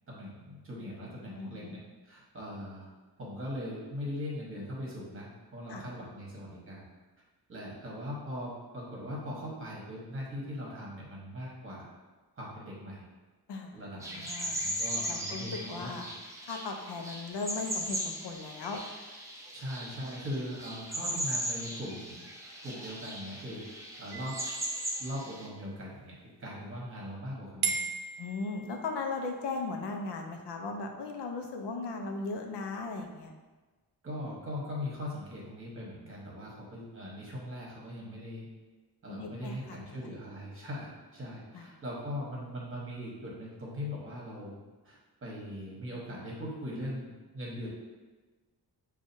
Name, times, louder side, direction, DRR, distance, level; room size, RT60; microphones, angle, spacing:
voice 1, 0.1-1.8 2.0-2.9 3.2-6.9 7.5-11.9 12.4-13.0 13.7-16.1 19.5-22.3 22.6-23.7 24.0-24.4 25.0-27.8 34.0-38.5 39.0-44.6 44.8-47.7, left 1 dB, 30° right, -4 dB, 1.1 m, -40 dB
voice 2, 1.4-1.7 5.7-5.9 13.5-14.6 15.1-16.1 16.4-18.8 28.2-33.3 39.1-40.2 41.5-41.7, left 3 dB, 85° left, 3 dB, 0.7 m, -37 dB
sound 1, 14.0-25.5, equal, 10° right, 0.5 m, -38 dB
sound 2, 24.1-25.7 27.6-29.2, right 5 dB, 70° right, 0.6 m, -37 dB
6.3 x 2.4 x 2.7 m, 1.2 s
wide cardioid pair, 170°, 40 cm